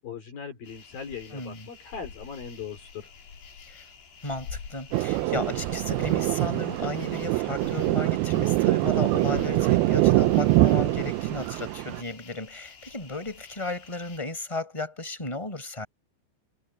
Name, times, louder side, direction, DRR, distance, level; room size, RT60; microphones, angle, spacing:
voice 1, 0.0-3.1, left 6 dB, 55° left, 4.7 m, -39 dB
sound 1, 0.6-14.2, left 6 dB, 85° left, 6.6 m, -46 dB
voice 2, 1.3-1.7 3.7-3.9 4.2-15.9, left 2 dB, 5° left, 5.6 m, -35 dB
Thunder, 4.9-12.0, right 18 dB, 80° right, 2.3 m, -24 dB
omnidirectional pair, 5.2 m